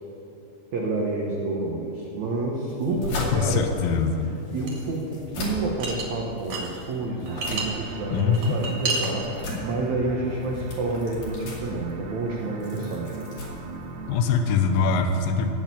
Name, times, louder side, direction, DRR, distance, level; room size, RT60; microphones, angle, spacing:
voice 1, 0.7-3.7 4.5-13.2, right 2 dB, 90° right, -2 dB, 1.6 m, -29 dB
sound 1, 2.7-14.4, left 2 dB, 55° left, 3.7 m, -38 dB
voice 2, 3.3-4.3 8.1-8.6 14.1-15.5, left 5 dB, 80° left, 6 dB, 2.0 m, -23 dB
sound 2, 4.7-4.9 5.8-6.7 7.0-7.7 8.2-9.1, right 3 dB, 50° right, 2.6 m, -29 dB
sound 3, 7.3-14.9, right 3 dB, 70° right, 3.1 m, -39 dB
17.5 x 6.4 x 8.5 m, 3.0 s
omnidirectional pair, 5.3 m